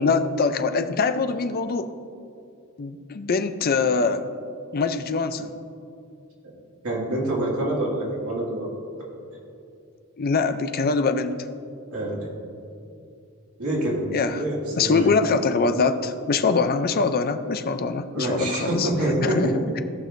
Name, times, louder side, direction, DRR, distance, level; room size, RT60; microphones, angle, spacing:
voice 1, 0.0-1.9 2.8-4.3 4.7-5.5 10.2-11.4 14.1-14.4 14.8-18.9 19.2-19.8, left 4 dB, 45° left, 9 dB, 0.5 m, -23 dB
voice 2, 6.8-9.1 11.9-12.3 13.6-14.1 14.4-15.1 18.1-19.5, right 1 dB, 75° right, -4 dB, 2.3 m, -26 dB
17.5 x 6.2 x 2.6 m, 2.5 s
head